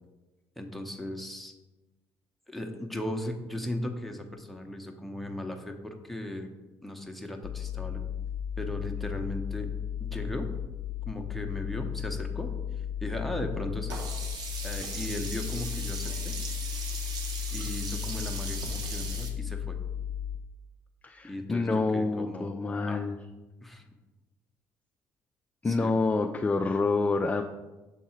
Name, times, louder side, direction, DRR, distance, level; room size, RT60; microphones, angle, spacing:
voice 1, 0.6-1.5 2.5-6.5 6.8-8.0 8.6-9.7 10.0-10.5 11.1-12.5 13.0-14.0 14.6-16.3 17.5-19.8 21.2-22.5 22.9-23.0 23.6-23.8 25.6-25.9, left 1 dB, ahead, 2 dB, 0.8 m, -37 dB
sound 1, 7.4-20.4, left 9 dB, 80° left, 0.5 m, -35 dB
Sink (filling or washing), 13.9-19.3, right 4 dB, 65° right, 1.1 m, -38 dB
voice 2, 21.0-23.2 25.6-27.4, left 3 dB, 20° left, 5 dB, 0.4 m, -27 dB
6.5 x 3.6 x 4.3 m, 1.1 s
cardioid pair, 90°, 7 cm